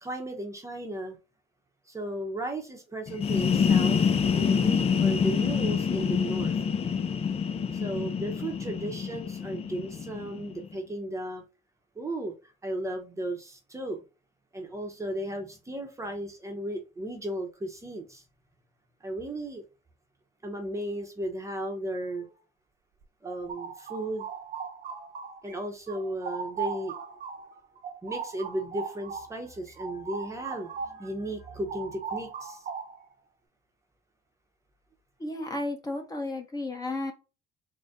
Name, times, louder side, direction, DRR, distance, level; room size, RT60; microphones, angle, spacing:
voice 1, 0.0-1.2 1.9-4.0 4.3-6.5 7.7-11.4 11.9-14.0 14.5-18.2 19.0-19.7 20.4-22.4 23.2-24.3 25.4-27.0 28.0-32.7, right 1 dB, 15° right, 0.8 m, -35 dB
sound 1, 3.1-10.7, left 6 dB, 35° left, 0.5 m, -26 dB
sound 2, 23.0-25.6 25.9-31.1 31.4-33.1, right 6 dB, 55° right, 0.8 m, -38 dB
voice 2, 35.2-37.1, left 2 dB, 20° left, 1.0 m, -33 dB
4.0 x 2.1 x 3.5 m
cardioid pair, 110°, 17 cm